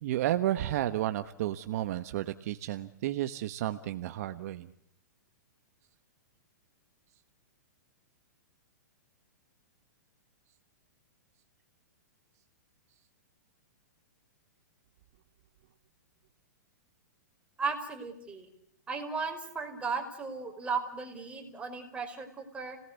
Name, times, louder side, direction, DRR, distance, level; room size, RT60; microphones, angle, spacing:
voice 1, 0.0-4.7, right 13 dB, 55° right, 10 dB, 1.2 m, -32 dB
voice 2, 17.6-18.5 18.9-22.8, right 4 dB, 10° right, 3 dB, 5.3 m, -36 dB
30.0 x 19.0 x 8.2 m, 0.74 s
hypercardioid pair, 130°, 10 cm